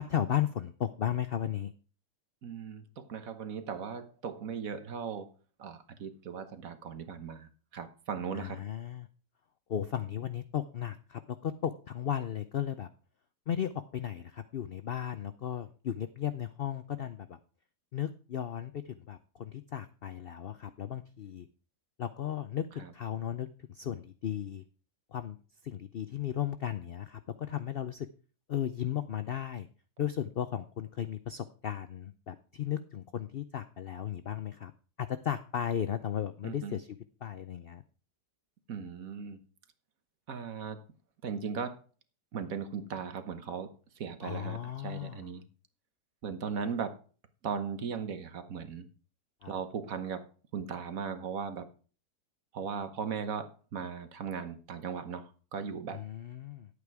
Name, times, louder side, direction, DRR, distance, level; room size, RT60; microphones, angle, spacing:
voice 1, 0.0-1.7 8.3-9.1 9.7-12.9 13.5-17.4 17.9-21.5 22.0-24.6 25.1-25.4 25.6-28.1 28.5-29.7 30.0-34.7 35.0-37.8 44.2-45.3 49.4-49.5 55.9-56.7, left 10 dB, 80° left, 11 dB, 0.5 m, -35 dB
voice 2, 2.4-5.3 5.6-8.6 22.8-22.9 36.4-36.8 38.7-39.4 40.3-40.8 41.2-41.8 42.3-45.4 46.2-47.0 47.4-48.9 49.5-50.3 50.5-51.7 52.5-56.0, right 6 dB, 60° right, 9 dB, 1.5 m, -38 dB
11.0 x 8.4 x 4.7 m, 0.38 s
omnidirectional pair, 1.8 m